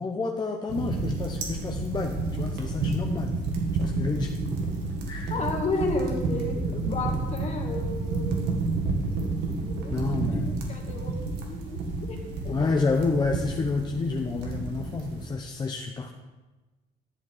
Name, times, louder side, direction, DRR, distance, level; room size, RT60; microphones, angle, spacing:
voice 1, 0.0-3.3 3.7-4.3 5.1-5.5 9.5-10.6 12.4-16.1, left 4 dB, 25° left, 2 dB, 0.9 m, -29 dB
sound 1, 0.7-15.3, right 3 dB, 85° right, 2.2 m, -30 dB
voice 2, 5.3-8.5 9.2-10.0 10.3-10.4 10.7-12.2 12.5-12.7, left 3 dB, 40° left, 1 dB, 2.4 m, -33 dB
12.5 x 7.4 x 5.6 m, 1.2 s
cardioid pair, 110°, 17 cm